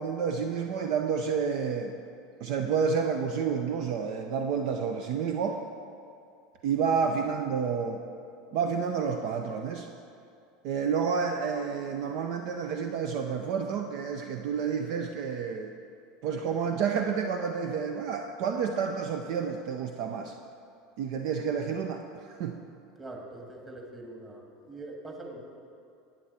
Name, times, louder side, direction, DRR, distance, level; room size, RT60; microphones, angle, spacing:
voice 1, 0.0-1.9 2.4-5.6 6.6-8.0 8.5-9.9 10.6-15.7 16.2-20.3 21.0-22.6, right 6 dB, 60° right, 5 dB, 0.5 m, -30 dB
voice 2, 23.0-25.4, right 2 dB, 25° right, 1 dB, 1.9 m, -43 dB
11.5 x 9.0 x 4.2 m, 2.5 s
hypercardioid pair, 80°, 0 cm